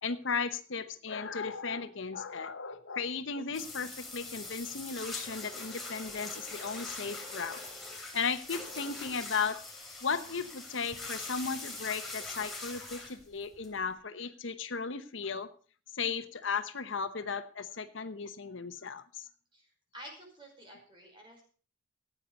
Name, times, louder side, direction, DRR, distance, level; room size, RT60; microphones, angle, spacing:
voice 1, 0.0-7.6 8.1-9.6 10.0-15.5 16.0-19.2, left 5 dB, 70° left, 10 dB, 0.9 m, -35 dB
sound 1, 3.5-13.9, left 3 dB, ahead, 3.3 m, -43 dB
voice 2, 19.9-21.4, equal, 25° right, 0 dB, 5.3 m, -50 dB
14.5 x 9.3 x 5.3 m, 0.40 s
head